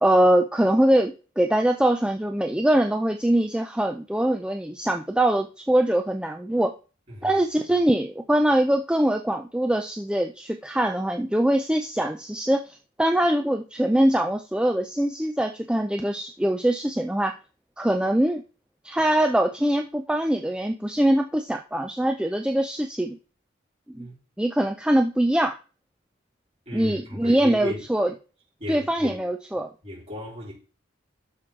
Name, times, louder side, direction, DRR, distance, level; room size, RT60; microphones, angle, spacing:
voice 1, 0.0-6.7 7.2-17.3 17.8-18.4 18.8-23.2 23.9-24.1 24.4-25.5 26.7-28.1 28.7-29.7, right 1 dB, 5° right, 0.4 m, -23 dB
voice 2, 7.1-7.4 23.9-24.1 26.7-27.8 28.6-29.2 29.8-30.5, left 1 dB, 35° right, 4.4 m, -35 dB
12.5 x 6.2 x 3.7 m
head